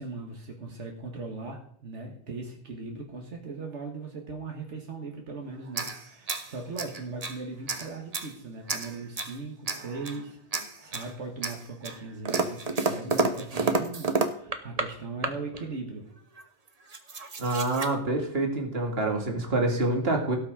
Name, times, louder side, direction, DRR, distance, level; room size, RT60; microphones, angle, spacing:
voice 1, 0.0-16.1, right 3 dB, 85° right, 1 dB, 1.9 m, -39 dB
sound 1, 5.7-7.4 7.7-8.3 8.7-9.4 9.7-10.2 10.5-11.1 11.4-14.9 15.2-15.6 16.4-16.5 16.7-17.9, right 3 dB, 35° right, 1.1 m, -30 dB
voice 2, 17.4-20.4, right 2 dB, 60° right, 2 dB, 2.4 m, -26 dB
17.5 x 6.1 x 4.9 m, 0.64 s
omnidirectional pair, 1.2 m